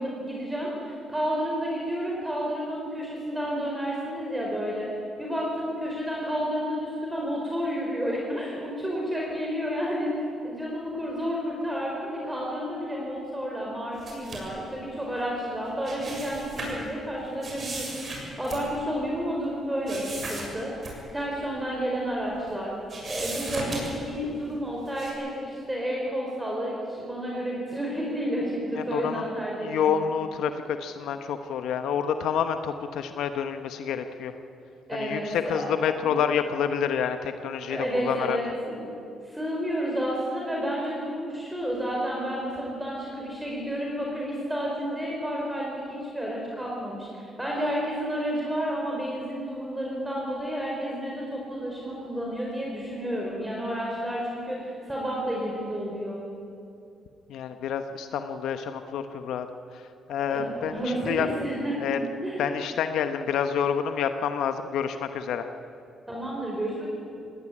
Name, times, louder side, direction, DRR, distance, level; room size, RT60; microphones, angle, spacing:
voice 1, 0.0-4.9 5.2-18.1 18.4-22.7 23.0-30.0 34.9-36.1 37.7-38.9 39.2-56.2 60.3-61.9 62.2-62.4 66.1-66.9, equal, 10° right, -2 dB, 4.7 m, -31 dB
sound 1, 14.0-14.6 15.6-16.9 17.4-19.0 19.9-20.5 20.8-21.0 21.4-21.5 22.2-22.6 22.9-24.2 24.9-25.1, right 2 dB, 45° right, 6.8 m, -36 dB
voice 2, 28.7-29.3 29.6-34.3 34.9-38.4 57.3-59.5 59.7-59.8 60.1-61.3 61.8-62.0 62.4-65.5, left 7 dB, 80° left, 8 dB, 0.9 m, -28 dB
18.5 x 17.5 x 9.9 m, 2.6 s
cardioid pair, 90°, 0 cm